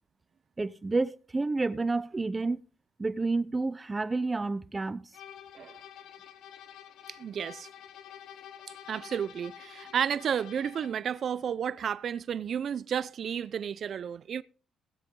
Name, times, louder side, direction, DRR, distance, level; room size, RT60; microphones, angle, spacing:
voice 1, 0.6-2.6 3.0-5.1, right 3 dB, 20° right, 0.8 m, -30 dB
sound 1, 5.1-11.1, left 10 dB, 80° left, 1.1 m, -49 dB
voice 2, 7.1-7.7 8.9-14.4, right 8 dB, 60° right, 0.6 m, -32 dB
18.5 x 7.7 x 3.9 m
cardioid pair, 90°, 0 cm